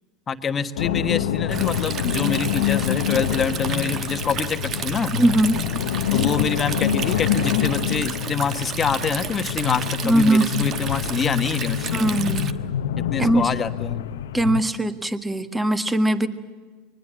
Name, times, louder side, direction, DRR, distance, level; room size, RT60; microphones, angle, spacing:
voice 1, 0.3-5.1 6.1-12.2 13.0-14.1, left 6 dB, 30° left, 8 dB, 1.4 m, -26 dB
sound 1, 0.8-14.6, left 9 dB, 85° left, 0.9 m, -26 dB
Stream, 1.5-12.5, right 7 dB, 40° right, 1.2 m, -33 dB
voice 2, 5.2-5.6 10.0-10.6 11.9-12.6 13.2-13.5 14.3-16.3, right 1 dB, 10° right, 9 dB, 1.6 m, -20 dB
24.0 x 20.0 x 7.5 m, 1.4 s
hypercardioid pair, 95°, 0 cm